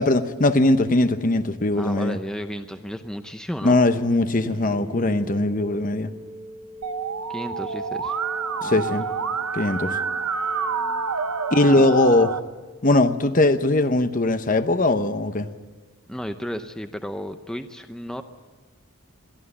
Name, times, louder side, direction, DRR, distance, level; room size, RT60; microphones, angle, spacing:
voice 1, 0.0-2.2 3.6-6.1 8.6-9.0 9.5-10.0 11.5-12.4 12.8-15.5, left 2 dB, 35° left, 10 dB, 0.9 m, -20 dB
voice 2, 1.7-3.8 7.3-8.2 8.6-8.8 11.7-11.9 16.1-18.2, equal, 5° left, 7 dB, 0.6 m, -33 dB
sound 1, 4.4-12.3, left 1 dB, 30° right, 1.2 m, -40 dB
Musical instrument, 6.8-12.4, right 6 dB, 85° right, 0.9 m, -28 dB
22.5 x 14.5 x 9.8 m, 1.3 s
head